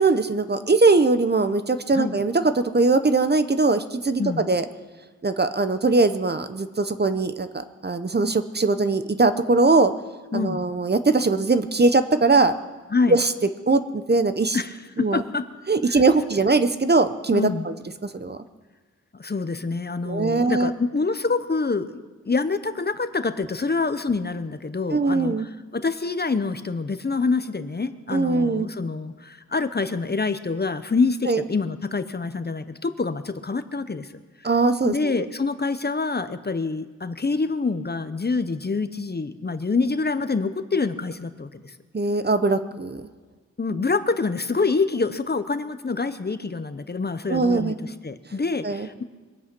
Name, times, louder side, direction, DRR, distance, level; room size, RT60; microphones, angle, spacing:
voice 1, 0.0-4.6 5.2-9.9 10.3-12.5 13.1-13.3 13.7-14.6 15.0-15.2 15.7-17.7 18.0-18.4 20.0-20.7 24.9-25.5 28.1-28.7 31.3-31.4 34.4-35.1 41.9-43.0 47.3-47.7 48.6-48.9, right 3 dB, 35° right, 10 dB, 0.7 m, -21 dB
voice 2, 14.5-15.5 15.9-16.0 17.3-17.7 19.1-21.9 22.3-34.1 34.8-41.7 43.6-49.0, left 4 dB, 35° left, 10 dB, 0.7 m, -26 dB
23.0 x 8.4 x 6.0 m, 1.3 s
wide cardioid pair, 80°, 29 cm